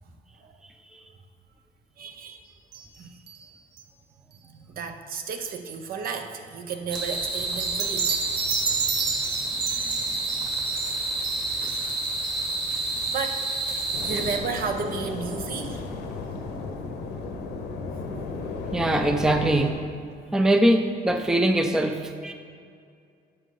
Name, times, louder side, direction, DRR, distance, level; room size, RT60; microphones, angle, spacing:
voice 1, 2.0-2.4 3.0-3.1 4.8-8.1 13.1-15.8, right 5 dB, 60° right, 6 dB, 0.8 m, -33 dB
sound 1, 2.7-3.0 3.3-3.5 3.8-3.9 7.6-13.4 13.8-13.9 14.3-14.4 14.8-14.9, right 6 dB, 90° right, 1.2 m, -32 dB
sound 2, 6.9-14.4, right 2 dB, 30° right, 1.7 m, -29 dB
sound 3, 13.9-19.7, left 3 dB, 85° left, 1.1 m, -34 dB
voice 2, 18.7-19.8 20.3-22.3, right 1 dB, 5° right, 6 dB, 0.5 m, -22 dB
9.9 x 6.5 x 4.0 m, 2.3 s
cardioid pair, 110°, 17 cm